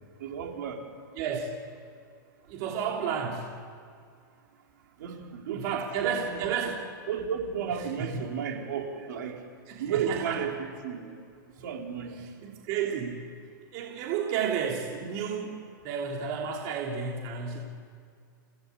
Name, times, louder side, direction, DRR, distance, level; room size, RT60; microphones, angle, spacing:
voice 1, 0.2-0.8 5.0-6.4 7.1-9.4 9.8-11.2 11.6-12.2, right 7 dB, 60° right, 2 dB, 4.0 m, -33 dB
voice 2, 1.2-1.5 2.5-3.5 5.5-6.8 7.8-8.2 9.7-10.4 12.2-13.2 13.7-15.6 15.8-17.6, right 7 dB, 35° right, -1 dB, 3.1 m, -32 dB
29.0 x 18.0 x 8.4 m, 2.3 s
supercardioid pair, 165°, 11 cm